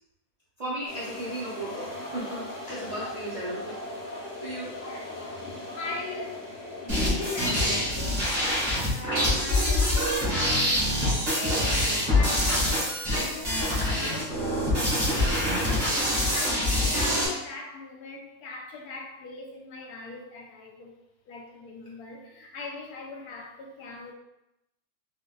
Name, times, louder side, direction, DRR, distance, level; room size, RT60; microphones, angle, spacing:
voice 1, 0.6-3.8 4.1-4.7, right 1 dB, 55° right, -8 dB, 0.4 m, -35 dB
sound 1, 0.9-8.1, left 2 dB, 60° left, 1.2 m, -38 dB
voice 2, 4.8-5.4 5.8-6.4 6.8-10.8 11.3-20.9 21.3-24.1, left 3 dB, 90° left, 0 dB, 1.2 m, -40 dB
sound 2, 6.9-17.3, left 1 dB, 30° right, 1.2 m, -25 dB
3.6 x 2.7 x 2.3 m, 0.87 s
omnidirectional pair, 1.5 m